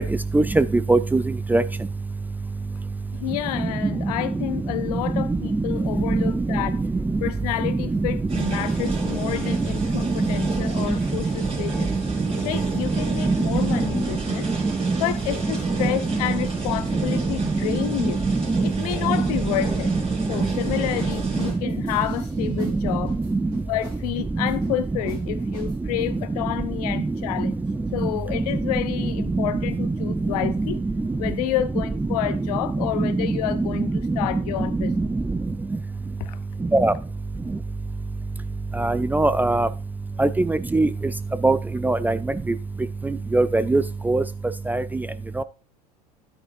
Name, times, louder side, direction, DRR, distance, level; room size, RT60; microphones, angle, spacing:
voice 1, 0.3-1.2 1.5-1.6 6.1-6.2 6.5-6.6 10.4-10.5 13.2-13.5 17.1-17.2 18.5-18.6 19.9-20.0 23.3-23.4 29.8-29.9 33.0-33.7 34.8-35.1 36.7-36.9 38.8-39.7 40.2-40.9 41.4-41.6 41.8-42.2 43.3-44.2 44.7-44.8 45.4-45.5, right 2 dB, 10° right, 0.4 m, -20 dB
voice 2, 3.1-6.8 7.2-11.9 12.4-14.5 15.0-18.2 18.6-19.9 20.3-23.2 23.7-27.6 27.9-30.8 31.2-34.9 36.2-36.4, left 14 dB, 70° left, 0.8 m, -29 dB
sound 1, 8.3-21.5, right 4 dB, 25° right, 3.7 m, -29 dB
sound 2, 20.9-22.8 23.1-24.0 24.4-24.8 25.1-25.2 25.5-26.2, right 4 dB, 85° right, 4.3 m, -44 dB
10.0 x 8.7 x 2.6 m
hypercardioid pair, 85°, 20 cm